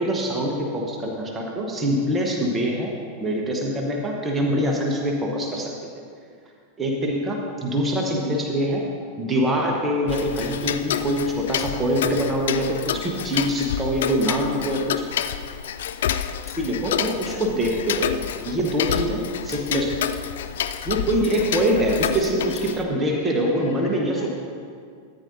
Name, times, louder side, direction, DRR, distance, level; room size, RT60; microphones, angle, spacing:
voice 1, 0.0-2.9 3.2-5.7 6.8-8.8 9.2-15.1 16.6-18.1 18.4-19.9 20.8-24.3, equal, 15° right, -1 dB, 1.3 m, -24 dB
Tick-tock, 10.1-22.8, left 9 dB, 60° left, 0.4 m, -29 dB
voice 2, 16.3-17.5 22.8-24.3, left 4 dB, 45° left, -2 dB, 1.8 m, -42 dB
13.5 x 9.3 x 2.7 m, 2.2 s
figure-of-eight pair, 90°, 0 cm